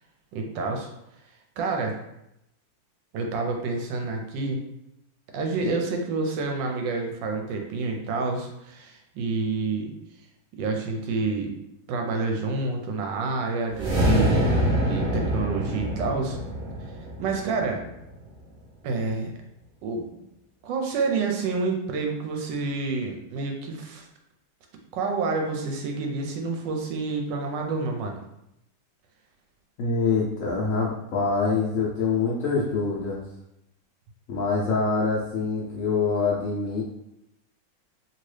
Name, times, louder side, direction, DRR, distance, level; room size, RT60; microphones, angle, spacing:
voice 1, 0.3-0.9 1.6-1.9 3.1-4.6 5.3-9.9 10.5-11.5 11.9-16.4 17.2-17.8 18.8-19.3 19.8-20.1 20.6-24.1 24.9-28.2, right 3 dB, 75° right, 2 dB, 1.2 m, -28 dB
sound 1, 13.7-18.1, equal, 30° right, 0.9 m, -25 dB
voice 2, 29.8-33.2 34.3-36.8, left 4 dB, 80° left, -5 dB, 0.7 m, -25 dB
2.8 x 2.8 x 3.2 m, 0.83 s
omnidirectional pair, 2.1 m